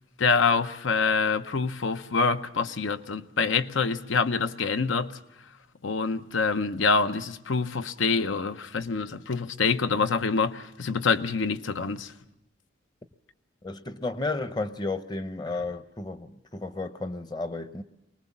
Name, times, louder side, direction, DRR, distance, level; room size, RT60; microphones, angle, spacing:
voice 1, 0.2-5.1 5.8-12.1, left 4 dB, 85° left, 0.8 m, -26 dB
voice 2, 13.6-17.8, left 3 dB, 20° left, 0.7 m, -33 dB
24.0 x 19.5 x 7.2 m
head